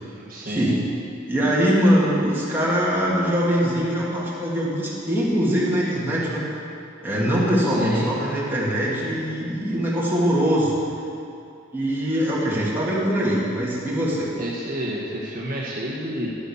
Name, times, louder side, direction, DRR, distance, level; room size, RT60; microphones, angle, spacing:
voice 1, 0.2-0.8 7.6-8.1 14.4-16.3, equal, 50° right, -5 dB, 1.8 m, -30 dB
voice 2, 1.3-6.5 7.0-10.8 11.7-14.3, equal, 10° right, -7 dB, 2.8 m, -22 dB
12.0 x 8.5 x 7.4 m, 2.7 s
head